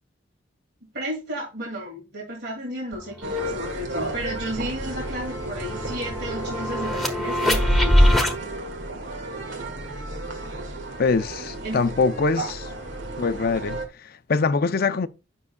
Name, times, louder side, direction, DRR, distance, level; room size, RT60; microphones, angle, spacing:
voice 1, 0.9-8.1 11.6-11.8 12.4-12.5, equal, 60° right, 2.3 m, -33 dB
sound 1, 2.9-3.0 3.4-8.3, equal, ahead, 1.3 m, -23 dB
sound 2, 3.2-13.9, right 2 dB, 75° right, 1.9 m, -34 dB
voice 2, 11.0-12.5 13.2-15.1, left 4 dB, 55° left, 0.5 m, -23 dB
9.5 x 6.2 x 2.2 m
head